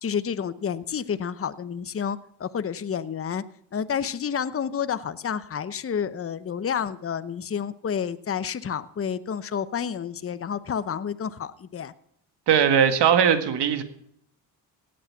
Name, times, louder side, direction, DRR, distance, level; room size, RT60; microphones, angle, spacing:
voice 1, 0.0-3.4 3.7-11.9, left 7 dB, 30° left, 14 dB, 0.9 m, -30 dB
voice 2, 12.5-13.8, right 8 dB, 70° right, 8 dB, 1.9 m, -19 dB
16.5 x 8.7 x 7.0 m, 0.70 s
supercardioid pair, 65°, 43 cm